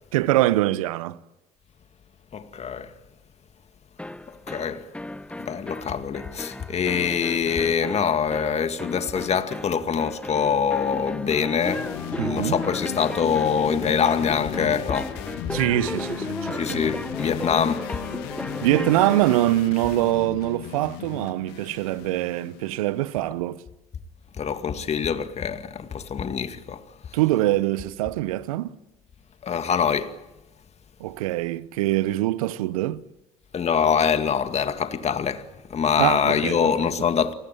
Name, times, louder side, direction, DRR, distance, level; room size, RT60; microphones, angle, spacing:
voice 1, 0.1-1.2 12.2-12.6 15.5-16.8 18.6-23.6 27.1-28.8 31.0-33.0 36.0-36.6, right 16 dB, 75° right, 1.0 m, -24 dB
voice 2, 2.3-2.9 4.5-4.8 5.4-15.1 16.5-17.9 24.4-26.8 29.4-30.2 33.5-37.3, left 7 dB, 35° left, 2.1 m, -24 dB
sound 1, 4.0-19.5, left 1 dB, 5° left, 1.0 m, -35 dB
sound 2, 11.6-23.1, left 12 dB, 65° left, 2.1 m, -36 dB
29.5 x 20.0 x 9.1 m
hypercardioid pair, 65°, 18 cm